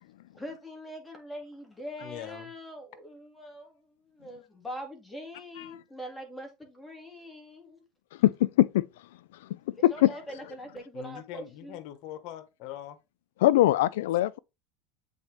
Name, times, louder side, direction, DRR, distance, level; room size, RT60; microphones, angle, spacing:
voice 1, 0.3-3.7 4.1-7.8 9.9-11.8, equal, 5° left, 2.0 m, -42 dB
voice 2, 2.0-2.5 10.9-13.0, left 12 dB, 65° left, 1.0 m, -42 dB
voice 3, 8.2-8.8 9.8-10.1 13.4-14.4, left 15 dB, 90° left, 0.4 m, -22 dB
7.9 x 4.1 x 3.3 m
supercardioid pair, 125°, 0 cm